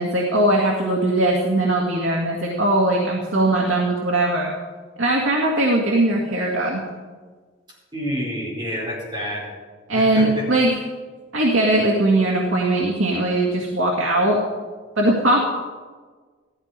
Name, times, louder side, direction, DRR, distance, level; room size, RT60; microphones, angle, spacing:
voice 1, 0.0-4.5 5.0-6.8 9.9-10.7 11.3-14.4 15.0-15.4, right 1 dB, 80° right, -2 dB, 2.0 m, -20 dB
voice 2, 7.9-9.4 9.9-10.4, equal, 20° right, -5 dB, 5.1 m, -28 dB
15.0 x 13.5 x 5.2 m, 1.5 s
head